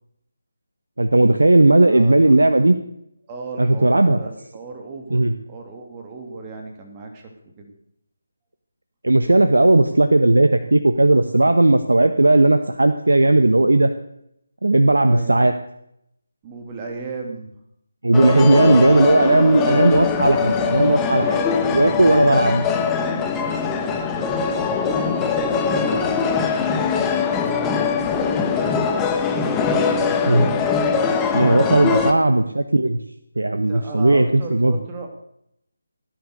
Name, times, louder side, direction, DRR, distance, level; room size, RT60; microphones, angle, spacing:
voice 1, 1.0-2.7 3.6-4.2 5.1-5.3 9.0-13.9 14.6-15.5 18.0-21.4 21.7-22.6 30.2-30.5 31.3-33.0 33.4-34.7, right 2 dB, 75° right, 9 dB, 1.2 m, -16 dB
voice 2, 1.8-2.4 3.3-7.3 7.6-7.7 15.0-15.5 16.4-17.5 19.2-20.3 20.8-22.8 23.3-25.2 25.6-26.1 26.6-29.1 33.7-35.1, right 3 dB, 20° right, 3 dB, 2.6 m, -36 dB
sound 1, 18.1-32.1, left 5 dB, 10° left, 1.2 m, -22 dB
17.5 x 10.5 x 6.6 m, 0.75 s
figure-of-eight pair, 155°, 0 cm